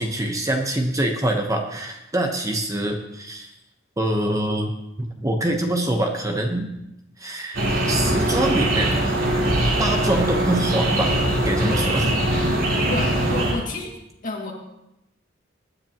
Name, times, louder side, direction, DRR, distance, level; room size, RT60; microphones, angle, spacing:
voice 1, 0.0-3.5 4.0-4.7 5.0-6.7 7.2-8.9 9.8-11.1 11.4-12.1, right 1 dB, 15° right, 2 dB, 1.0 m, -24 dB
sound 1, 7.5-13.5, right 1 dB, 75° right, 3.8 m, -21 dB
voice 2, 12.9-13.9 14.2-14.5, left 2 dB, 45° left, 0 dB, 2.2 m, -30 dB
19.5 x 9.7 x 3.0 m, 0.87 s
head